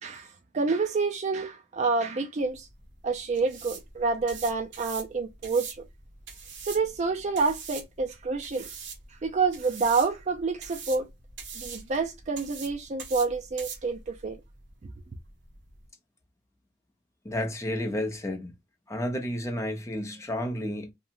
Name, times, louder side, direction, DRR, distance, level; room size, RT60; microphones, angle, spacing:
voice 1, 0.0-2.7 3.0-5.9 6.6-8.7 9.2-11.1 11.6-14.4, right 4 dB, 40° right, 0.4 m, -28 dB
sound 1, 2.4-15.9, right 5 dB, 80° right, 1.0 m, -44 dB
voice 2, 17.2-18.6 18.9-20.9, left 1 dB, 15° left, 0.7 m, -31 dB
2.8 x 2.3 x 2.5 m
head